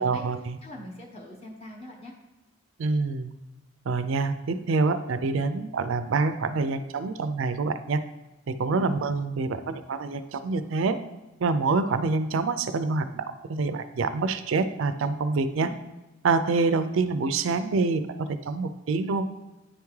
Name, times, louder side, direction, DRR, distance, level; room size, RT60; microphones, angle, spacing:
voice 1, 0.0-0.6 2.8-3.3 3.9-8.0 8.5-11.0 11.4-15.7 16.2-19.2, right 4 dB, 65° right, 10 dB, 0.4 m, -26 dB
voice 2, 0.6-2.1 8.8-9.0 15.6-15.8, left 1 dB, 30° left, 0 dB, 0.9 m, -42 dB
9.7 x 3.5 x 3.2 m, 1.0 s
head